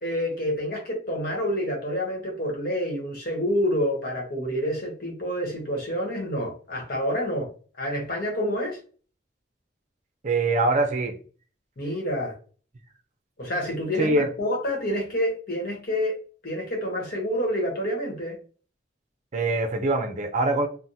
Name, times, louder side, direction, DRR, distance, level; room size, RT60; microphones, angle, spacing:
voice 1, 0.0-7.5 7.8-8.8 11.8-12.4 13.4-16.2 16.4-18.4, equal, 55° left, 1.1 m, -28 dB
voice 2, 10.2-11.1 14.0-14.3 19.3-20.7, right 2 dB, 40° right, 0.5 m, -23 dB
3.4 x 2.1 x 2.7 m
head